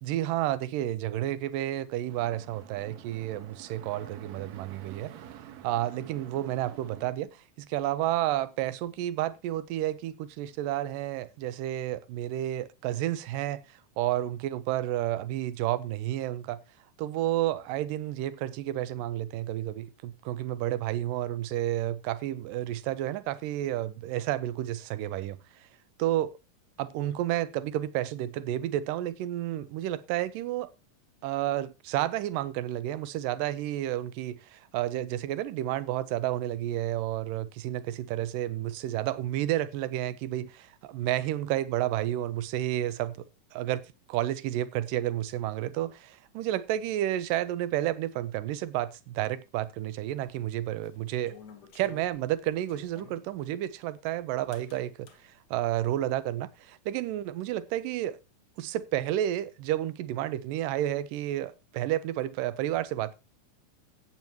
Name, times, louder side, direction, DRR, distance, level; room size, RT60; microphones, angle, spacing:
voice 1, 0.0-5.2 5.6-7.3 7.6-16.6 17.0-25.4 26.0-26.3 26.8-30.7 31.2-43.2 43.5-43.8 44.1-51.4 51.8-58.2 58.6-63.1, right 13 dB, 85° right, 2.3 m, -31 dB
sound 1, 2.1-7.1, right 11 dB, 70° right, 1.8 m, -48 dB
sound 2, 50.2-53.2 54.5-55.2, left 6 dB, 65° left, 1.0 m, -51 dB
16.0 x 7.9 x 3.0 m
omnidirectional pair, 3.8 m